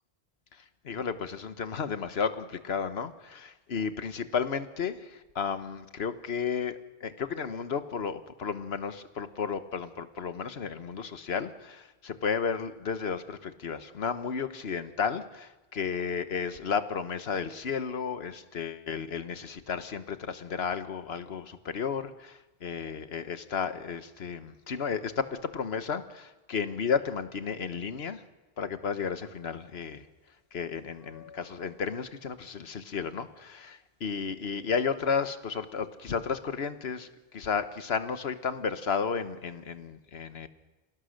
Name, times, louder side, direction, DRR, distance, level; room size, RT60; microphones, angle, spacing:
voice 1, 0.5-28.2 28.6-30.1 30.5-40.5, left 6 dB, 75° left, 11 dB, 1.3 m, -33 dB
sound 1, 29.1-39.9, left 6 dB, 60° right, 3.1 m, -62 dB
26.5 x 17.0 x 6.5 m, 1.1 s
omnidirectional pair, 1.1 m